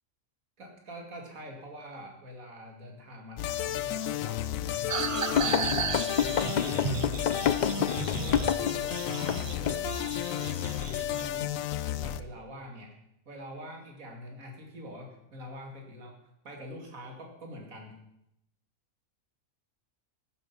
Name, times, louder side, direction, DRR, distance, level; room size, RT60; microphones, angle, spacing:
voice 1, 0.6-5.2 6.2-7.1 7.7-11.5 11.9-12.9 13.3-18.0, equal, 80° right, 2 dB, 2.8 m, -45 dB
sound 1, 3.4-12.2, left 12 dB, 80° left, 1.0 m, -32 dB
sound 2, 4.9-11.2, right 5 dB, 55° right, 0.3 m, -35 dB
sound 3, 5.4-8.8 9.3-9.4 9.7-9.8, left 9 dB, 65° left, 0.4 m, -27 dB
15.5 x 8.5 x 5.9 m, 0.81 s
omnidirectional pair, 1.4 m